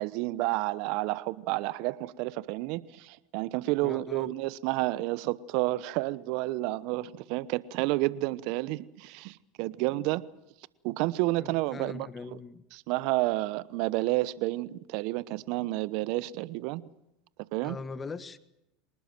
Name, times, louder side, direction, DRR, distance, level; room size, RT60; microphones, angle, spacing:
voice 1, 0.0-10.2 10.8-12.1 12.7-16.8 17.5-17.8, right 19 dB, 60° right, 1.0 m, -30 dB
voice 2, 3.8-4.3 11.4-12.6 17.6-18.4, left 4 dB, 25° left, 1.4 m, -41 dB
25.0 x 19.5 x 7.7 m
hypercardioid pair, 90°, 0 cm